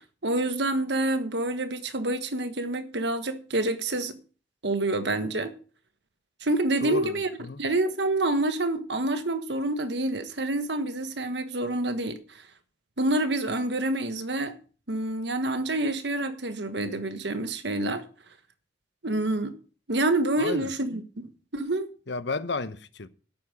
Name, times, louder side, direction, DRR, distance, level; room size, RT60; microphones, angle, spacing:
voice 1, 0.0-4.2 4.6-5.5 6.4-7.3 7.6-12.2 13.0-14.5 14.9-18.0 19.0-19.6 19.9-21.3 21.5-21.9, right 2 dB, 65° right, 1.5 m, -27 dB
voice 2, 6.8-7.6 20.4-20.7 22.1-23.1, left 3 dB, 70° left, 1.0 m, -33 dB
11.0 x 8.8 x 6.2 m
head